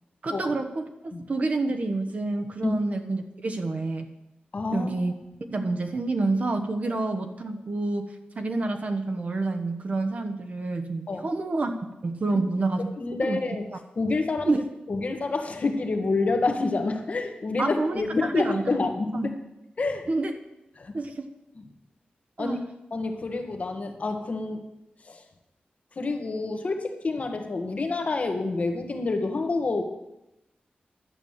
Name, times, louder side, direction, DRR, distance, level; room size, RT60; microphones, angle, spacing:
voice 1, 0.2-0.8 1.3-4.1 4.7-5.1 5.5-11.7 12.0-12.9 13.2-13.4 14.4-14.6 17.6-18.7 19.1-19.3 20.1-20.3 20.9-21.3 22.4-22.6, right 2 dB, 45° right, 5 dB, 1.1 m, -28 dB
voice 2, 4.5-4.9 11.1-11.3 13.0-13.6 14.0-14.6 14.9-19.3 19.8-20.1 20.8-20.9 22.4-22.6 22.9-24.6 25.0-25.2 26.0-29.8, left 3 dB, 45° left, 4 dB, 1.4 m, -28 dB
11.0 x 8.2 x 7.3 m, 0.91 s
wide cardioid pair, 155°, 3 cm